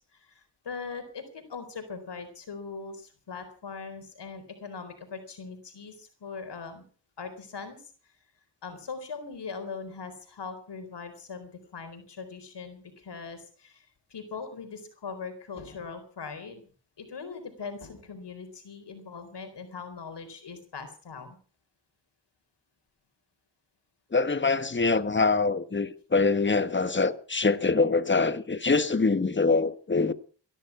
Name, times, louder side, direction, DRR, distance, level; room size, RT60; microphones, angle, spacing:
voice 1, 0.1-6.8 7.2-7.8 8.6-16.6 17.0-21.4, left 5 dB, 70° left, 4.2 m, -40 dB
voice 2, 24.1-30.1, left 4 dB, 25° left, 1.4 m, -24 dB
17.5 x 12.0 x 5.9 m
cardioid pair, 55°, 43 cm